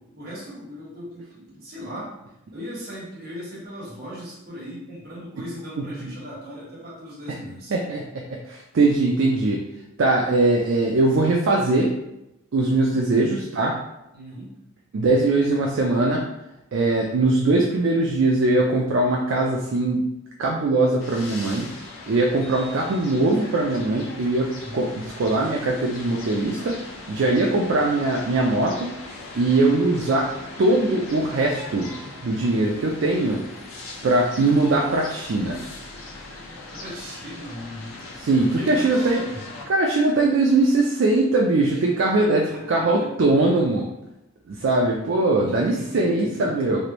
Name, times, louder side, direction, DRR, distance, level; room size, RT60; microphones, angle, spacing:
voice 1, 0.1-2.1 2.5-7.8 14.1-14.5 24.5-24.9 36.7-37.9 38.3-39.5 41.7-41.8 42.1-43.3 45.3-46.8, equal, 50° right, -7 dB, 1.3 m, -38 dB
voice 2, 5.8-6.1 7.3-7.4 7.7-9.6 10.0-11.9 12.5-13.8 14.9-16.2 16.7-20.0 20.4-21.7 22.1-26.8 27.1-28.9 29.3-30.3 30.6-31.9 32.2-33.4 34.0-35.6 38.2-39.2 39.7-42.4 42.7-43.9 44.5-46.8, right 2 dB, 65° right, -1 dB, 0.4 m, -21 dB
sound 1, 21.0-39.6, left 2 dB, 80° left, 0.6 m, -40 dB
3.2 x 2.5 x 2.9 m, 0.88 s
head